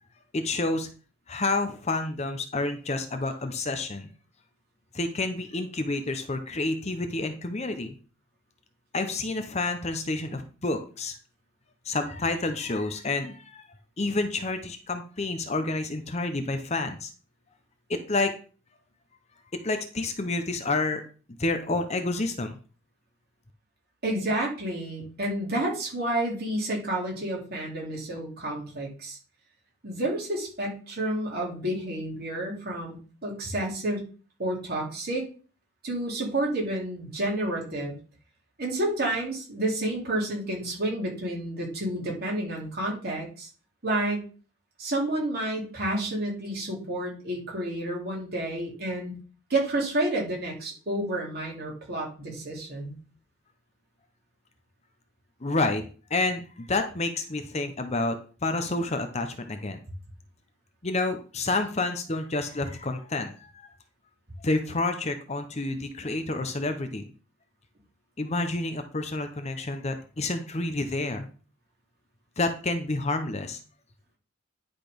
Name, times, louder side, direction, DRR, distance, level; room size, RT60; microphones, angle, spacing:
voice 1, 0.3-0.9 1.3-4.1 4.9-8.0 8.9-11.2 11.8-13.6 14.0-17.1 17.9-18.3 19.6-21.0 21.3-22.6 55.4-55.8 56.1-59.8 60.8-63.7 64.4-67.0 68.2-71.3 72.4-73.6, left 2 dB, 30° left, 7 dB, 0.8 m, -29 dB
voice 2, 24.0-29.2 29.8-34.0 34.4-35.3 35.8-37.9 38.6-43.5 43.8-44.3 44.8-49.1 49.5-52.9, right 1 dB, 45° right, -2 dB, 3.2 m, -30 dB
10.5 x 4.1 x 5.2 m, 0.38 s
head